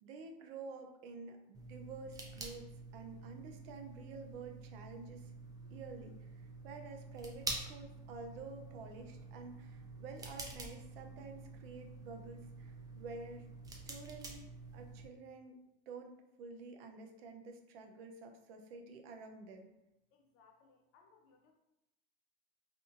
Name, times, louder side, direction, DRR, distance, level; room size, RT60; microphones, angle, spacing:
voice 1, 0.0-5.3 5.7-14.4 14.7-15.5 15.9-19.7, right 4 dB, 80° right, 4 dB, 0.6 m, -50 dB
sound 1, 1.5-15.1, right 2 dB, 15° right, 0.4 m, -48 dB
voice 2, 20.1-21.5, left 5 dB, 50° left, 2 dB, 0.5 m, -66 dB
2.6 x 2.5 x 2.4 m, 0.90 s
supercardioid pair, 110°, 30 cm